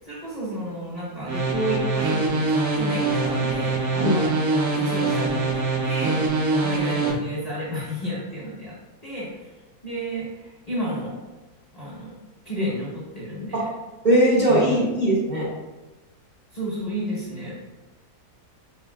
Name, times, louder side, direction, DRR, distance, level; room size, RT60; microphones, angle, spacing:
voice 1, 0.0-2.4 2.7-4.4 4.8-5.5 5.8-6.2 6.6-8.7 9.0-9.3 9.8-11.2 11.7-12.2 12.4-13.7 14.5-14.9 16.5-17.5, equal, 25° left, -7 dB, 1.1 m, -31 dB
sound 1, 1.3-7.1, right 3 dB, 65° right, 1.2 m, -23 dB
voice 2, 14.0-15.5, right 1 dB, 35° right, -7 dB, 0.8 m, -19 dB
5.0 x 3.8 x 2.3 m, 1.1 s
omnidirectional pair, 1.8 m